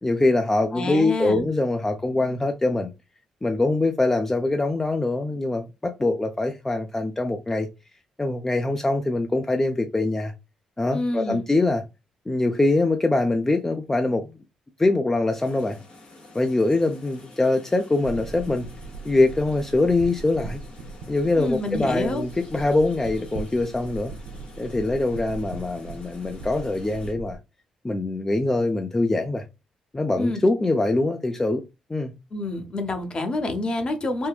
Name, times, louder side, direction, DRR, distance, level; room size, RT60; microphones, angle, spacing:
voice 1, 0.0-2.9 3.4-7.7 8.2-10.3 10.8-11.8 12.3-14.3 14.8-15.8 16.3-18.7 19.0-20.6 21.1-24.1 24.6-27.4 27.8-29.4 29.9-31.6 31.9-32.1, left 2 dB, 20° left, 0.4 m, -23 dB
voice 2, 0.7-1.4 10.9-11.4 21.4-22.2 30.2-30.4 32.3-34.3, left 2 dB, 40° left, 0.8 m, -27 dB
sound 1, 15.3-27.1, left 2 dB, 80° left, 1.9 m, -48 dB
sound 2, 18.0-27.4, right 3 dB, 90° right, 0.5 m, -39 dB
3.6 x 2.1 x 2.3 m
supercardioid pair, 65°, 2 cm